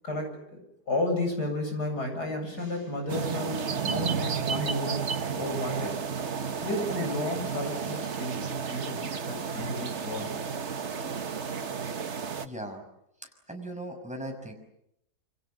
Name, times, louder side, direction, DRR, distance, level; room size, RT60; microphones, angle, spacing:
voice 1, 0.0-0.6 0.9-5.0 5.4-6.0 6.6-10.5, left 1 dB, 70° left, 4 dB, 8.7 m, -33 dB
sound 1, 3.1-12.5, right 6 dB, 45° right, 1.4 m, -32 dB
voice 2, 12.4-12.8 13.2-14.5, right 1 dB, 5° right, 3 dB, 6.0 m, -38 dB
28.5 x 27.0 x 7.6 m, 0.78 s
omnidirectional pair, 1.8 m